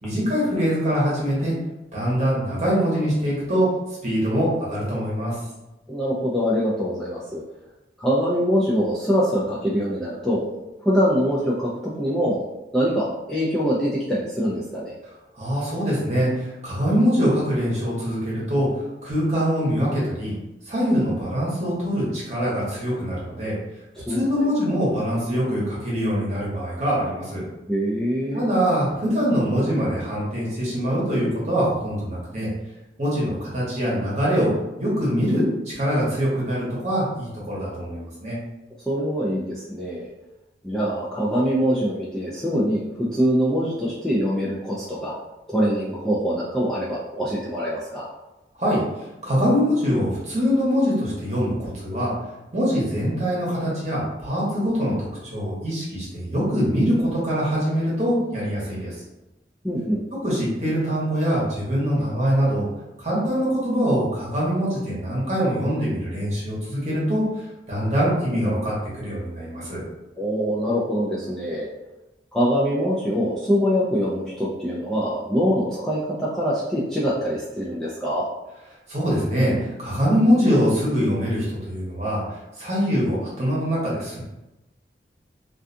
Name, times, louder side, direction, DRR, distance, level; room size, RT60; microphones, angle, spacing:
voice 1, 0.0-1.5 1.9-3.7 4.0-5.4 15.3-20.3 20.7-23.5 24.1-27.4 28.3-32.5 33.0-34.5 34.8-38.4 48.5-48.8 49.2-52.1 52.5-58.9 60.2-62.7 63.0-67.2 67.7-69.8 78.9-84.2, equal, 40° right, -6 dB, 1.0 m, -23 dB
voice 2, 5.9-7.4 8.0-10.5 10.8-12.4 12.7-14.9 24.0-24.5 27.7-28.4 38.9-40.1 40.6-45.2 45.5-48.1 59.6-60.0 70.2-71.7 72.3-78.3, equal, 5° left, -8 dB, 0.3 m, -24 dB
2.4 x 2.3 x 2.5 m, 1.0 s
head